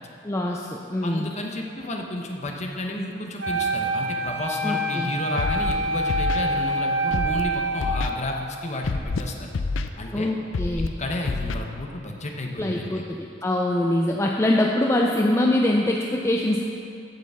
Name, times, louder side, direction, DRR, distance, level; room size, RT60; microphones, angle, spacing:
voice 1, 0.2-1.3 4.6-5.1 10.1-10.9 12.6-16.7, left 1 dB, 15° left, -1 dB, 0.4 m, -24 dB
voice 2, 1.0-9.5 10.0-10.3 10.7-13.0, left 1 dB, 35° left, 2 dB, 1.0 m, -32 dB
Wind instrument woodwind instrument, 3.4-8.5, right 1 dB, 65° right, 0.8 m, -26 dB
Scratching (performance technique), 5.4-5.7 6.1-6.4 7.1-7.4 7.8-8.1 8.8-9.2 9.5-9.9 10.5-10.9 11.3-11.6, left 3 dB, 90° left, 0.5 m, -27 dB
8.3 x 6.8 x 7.1 m, 2.6 s
head